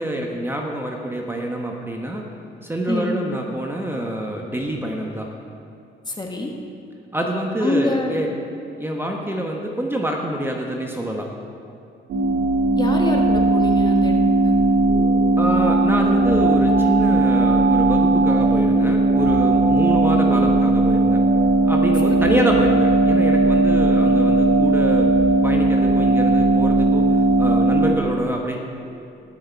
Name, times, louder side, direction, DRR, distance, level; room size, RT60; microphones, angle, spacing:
voice 1, 0.0-2.2 2.6-5.3 7.1-8.3 8.8-11.3 15.4-21.2 21.6-25.1 25.4-27.0 27.4-28.6, right 1 dB, 10° right, 0 dB, 1.2 m, -26 dB
voice 2, 2.9-3.2 6.1-6.5 7.6-8.2 12.7-14.6 22.3-22.4, left 2 dB, 20° left, 1 dB, 1.6 m, -25 dB
sound 1, 12.1-27.9, right 2 dB, 90° right, 1.7 m, -17 dB
19.5 x 6.6 x 4.6 m, 2.6 s
cardioid pair, 90°, 20 cm